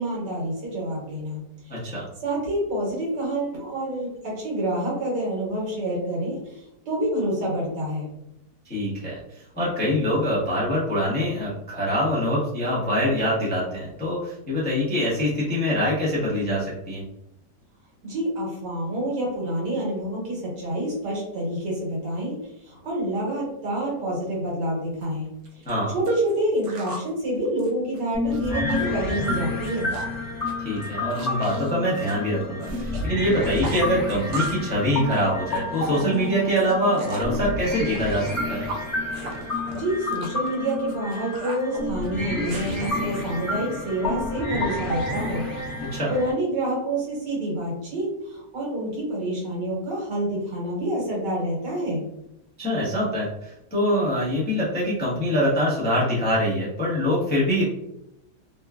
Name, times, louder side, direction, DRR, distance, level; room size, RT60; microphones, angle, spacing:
voice 1, 0.0-1.8 2.2-8.1 18.0-22.3 22.6-25.6 25.9-29.9 39.7-45.4 46.1-52.1, right 1 dB, 90° right, -4 dB, 1.9 m, -27 dB
voice 2, 1.7-2.0 8.7-17.0 25.6-25.9 30.6-38.6 45.9-46.1 52.6-57.6, equal, 10° left, -7 dB, 0.5 m, -24 dB
sound 1, 25.0-25.1 25.5-27.1 27.5-28.8 29.1-29.4 29.6-30.2 30.5-33.1 33.3-34.7 35.0-37.4 37.9-42.9, right 2 dB, 70° right, 1.0 m, -38 dB
sound 2, 28.1-46.3, left 2 dB, 40° left, 1.4 m, -30 dB
3.8 x 2.3 x 2.3 m, 0.85 s
omnidirectional pair, 1.8 m